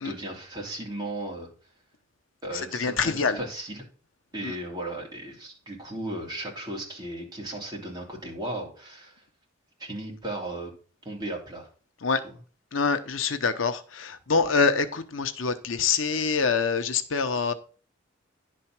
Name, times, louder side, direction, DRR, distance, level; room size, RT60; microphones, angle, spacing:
voice 1, 0.0-1.5 2.4-3.8 4.3-9.2 9.8-10.7 11.0-11.7, right 1 dB, 20° right, 3.2 m, -36 dB
voice 2, 2.7-3.4 4.4-4.5 12.0-12.2 12.7-17.5, left 5 dB, 85° left, 0.9 m, -25 dB
11.0 x 4.5 x 6.0 m
head